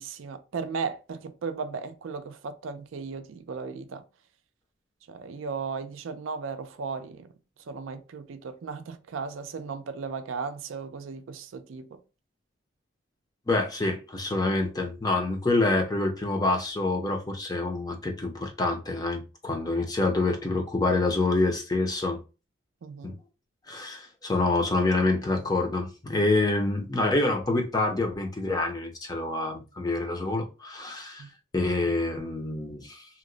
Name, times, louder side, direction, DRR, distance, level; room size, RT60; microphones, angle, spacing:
voice 1, 0.0-4.0 5.1-7.3 7.7-12.0 22.8-23.2 31.2-31.3, right 5 dB, 80° right, 0.4 m, -36 dB
voice 2, 13.5-22.2 23.0-23.1 23.7-31.3 31.5-33.1, left 2 dB, 20° left, 0.5 m, -27 dB
2.8 x 2.0 x 3.8 m
head